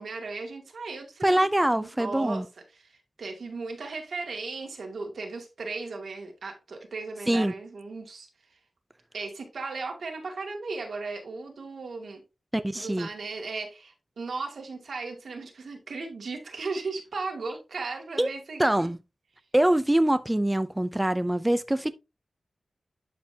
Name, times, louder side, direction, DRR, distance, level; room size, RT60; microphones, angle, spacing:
voice 1, 0.0-2.4 2.7-8.3 9.1-12.2 12.7-18.9, right 3 dB, 85° right, 2.3 m, -36 dB
voice 2, 1.2-2.4 7.3-7.5 12.5-13.1 18.2-18.3 18.6-19.0 19.5-21.9, right 1 dB, 15° right, 0.5 m, -24 dB
11.0 x 5.3 x 2.8 m
wide cardioid pair, 70°, 0 cm